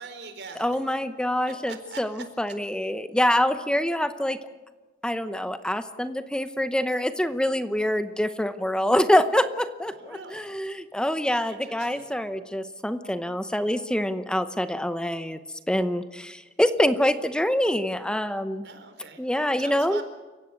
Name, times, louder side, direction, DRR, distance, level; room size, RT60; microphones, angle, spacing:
voice 1, 0.0-0.7 1.4-2.2 9.9-10.6 11.5-12.1 18.6-19.2 19.6-20.0, right 4 dB, 80° right, 7 dB, 4.2 m, -43 dB
voice 2, 0.6-4.4 5.0-15.4 15.7-18.6 19.2-20.0, left 1 dB, 5° left, 10 dB, 0.8 m, -25 dB
29.5 x 16.5 x 8.3 m, 1.3 s
head